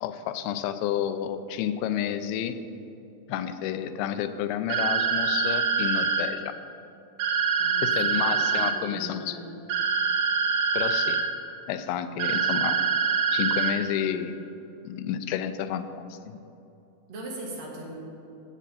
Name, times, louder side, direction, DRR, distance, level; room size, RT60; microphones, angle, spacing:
voice 1, 0.0-2.6 3.3-6.6 7.8-9.4 10.7-11.2 11.7-12.8 13.3-14.3 14.8-16.4, left 9 dB, 85° left, 10 dB, 2.5 m, -30 dB
sound 1, 4.7-6.2 7.2-8.7 9.7-11.2 12.2-13.7, right 5 dB, 80° right, 2.8 m, -25 dB
voice 2, 7.6-9.6 17.1-18.0, right 1 dB, 65° right, -3 dB, 3.2 m, -40 dB
16.0 x 7.2 x 4.2 m, 2.8 s
omnidirectional pair, 4.4 m